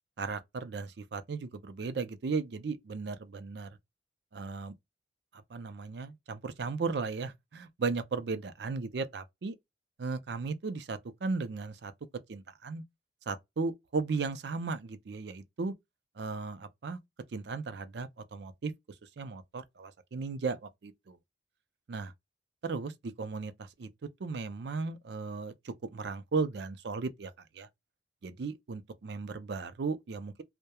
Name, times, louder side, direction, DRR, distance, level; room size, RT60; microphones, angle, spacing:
voice 1, 0.2-3.7 4.3-4.8 5.5-9.6 10.0-11.9 12.3-12.8 13.3-15.7 16.2-17.0 17.3-18.7 19.2-21.2 21.9-22.1 22.6-23.9 24.2-27.7 28.2-30.4, right 4 dB, 70° right, 0.5 m, -36 dB
2.2 x 2.1 x 2.8 m
head